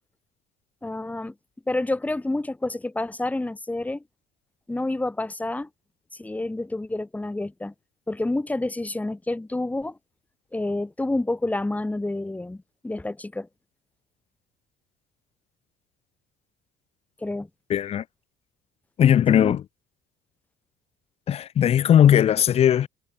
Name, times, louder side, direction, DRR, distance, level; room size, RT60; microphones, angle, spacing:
voice 1, 0.8-1.3 1.7-4.0 4.7-5.7 6.2-7.7 8.1-10.0 10.5-13.5 17.2-17.5 19.3-19.6, left 2 dB, 10° left, 4.3 m, -28 dB
voice 2, 17.7-18.0 19.0-19.6 21.3-22.9, left 10 dB, 35° left, 0.6 m, -18 dB
cardioid pair, 155°, 19 cm